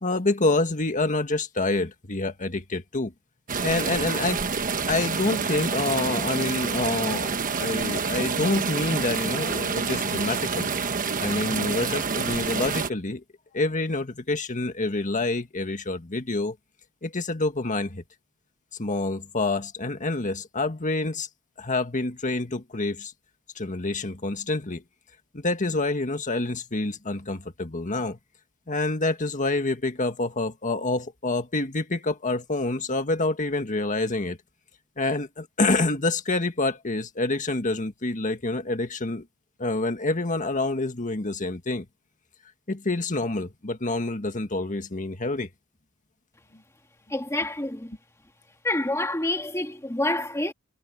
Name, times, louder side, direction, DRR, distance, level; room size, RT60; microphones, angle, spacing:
voice 1, 0.0-3.1 3.6-4.4 4.9-7.3 7.6-10.7 11.2-13.2 13.5-16.6 17.0-18.0 18.8-21.3 21.6-23.1 23.5-24.8 25.3-28.2 28.7-34.4 35.0-39.3 39.6-41.9 42.7-45.5, left 2 dB, 35° left, 1.8 m, -27 dB
sound 1, 3.5-12.9, right 5 dB, 40° right, 1.2 m, -28 dB
voice 2, 47.1-47.9 48.6-50.5, left 1 dB, 15° left, 2.1 m, -27 dB
head